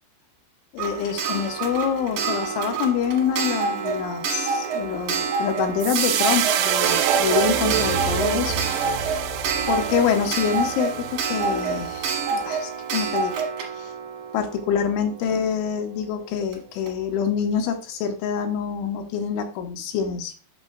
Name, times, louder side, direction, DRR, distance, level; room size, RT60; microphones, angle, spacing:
voice 1, 0.7-8.6 9.7-13.3 13.8-13.9 14.3-20.3, left 7 dB, 90° left, 5 dB, 3.2 m, -26 dB
Clock, 0.8-15.4 16.5-16.6 16.9-17.0, right 5 dB, 65° right, 2.2 m, -28 dB
Swoosh FX Soft, 5.8-12.2, right 9 dB, 85° right, 3.1 m, -26 dB
8.8 x 6.2 x 2.2 m, 0.36 s
omnidirectional pair, 5.4 m